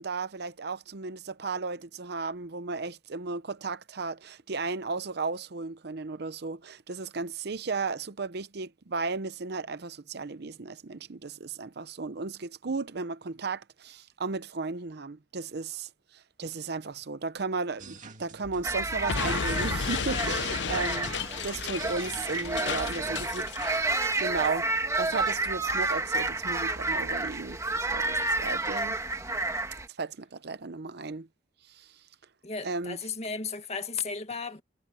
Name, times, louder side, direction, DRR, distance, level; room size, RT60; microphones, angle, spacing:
voice 1, 0.0-23.5 23.7-24.7 25.0-29.0 30.0-31.3 31.7-31.9 32.6-33.0, right 4 dB, 60° right, 0.7 m, -35 dB
sound 1, 17.8-23.4, right 2 dB, 45° right, 2.2 m, -46 dB
sound 2, 18.6-29.9, right 2 dB, 15° right, 2.1 m, -30 dB
Explosion, 19.1-23.9, left 6 dB, 70° left, 0.7 m, -33 dB
voice 2, 22.6-23.2 32.4-34.6, left 5 dB, 35° left, 2.0 m, -36 dB
head